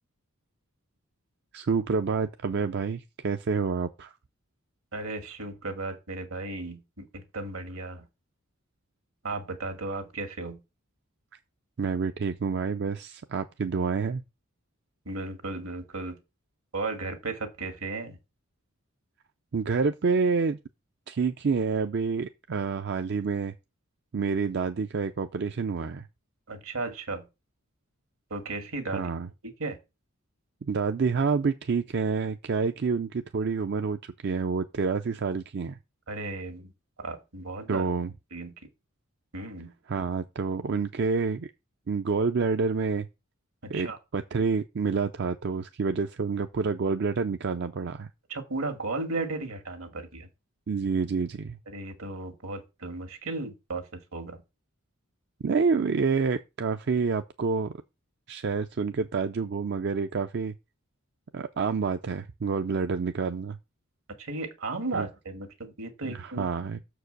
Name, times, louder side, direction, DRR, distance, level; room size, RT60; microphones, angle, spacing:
voice 1, 1.5-4.1 11.8-14.2 19.5-20.6 21.1-23.5 24.1-26.0 28.9-29.3 30.6-35.8 37.7-38.1 39.9-41.5 41.9-43.1 43.7-43.9 44.1-48.1 50.7-51.6 55.4-57.7 58.3-60.5 61.3-63.6 64.9-65.1 66.0-66.8, right 5 dB, 50° right, 0.4 m, -28 dB
voice 2, 4.9-8.1 9.2-10.6 15.1-16.2 16.7-18.2 26.5-27.3 28.3-29.1 29.4-29.8 36.1-36.7 37.0-37.9 38.3-38.5 39.3-39.7 43.6-44.0 48.3-50.3 51.7-54.4 64.2-66.5, right 3 dB, 75° right, 1.9 m, -35 dB
6.7 x 4.8 x 6.5 m
head